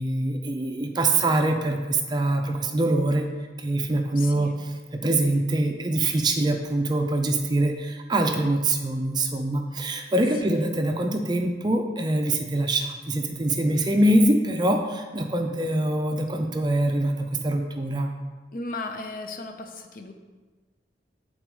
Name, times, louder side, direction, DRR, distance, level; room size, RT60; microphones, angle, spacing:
voice 1, 0.0-3.2 3.6-18.1, right 1 dB, 25° right, 4 dB, 0.5 m, -24 dB
voice 2, 4.2-4.6 10.4-10.7 13.8-13.9 18.5-20.1, left 2 dB, 50° left, 5 dB, 0.6 m, -36 dB
7.8 x 3.9 x 4.7 m, 1.3 s
head